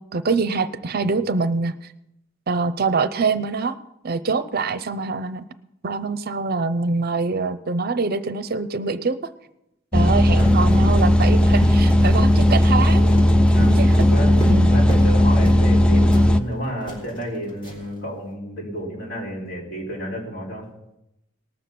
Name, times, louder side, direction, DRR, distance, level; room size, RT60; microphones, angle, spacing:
voice 1, 0.1-1.7 2.5-3.8 4.0-5.5 5.8-9.2 9.9-13.2 13.6-14.0 14.5-14.7, right 4 dB, 50° right, 14 dB, 0.6 m, -24 dB
sound 1, 9.9-16.4, left 1 dB, 5° left, 0.4 m, -16 dB
voice 2, 10.3-10.7 13.5-13.8 14.1-20.7, equal, 65° left, -3 dB, 4.5 m, -31 dB
Run, 10.4-15.2 15.4-15.7 16.1-18.0, right 1 dB, 25° left, 4.1 m, -33 dB
19.0 x 6.9 x 5.9 m, 0.85 s
head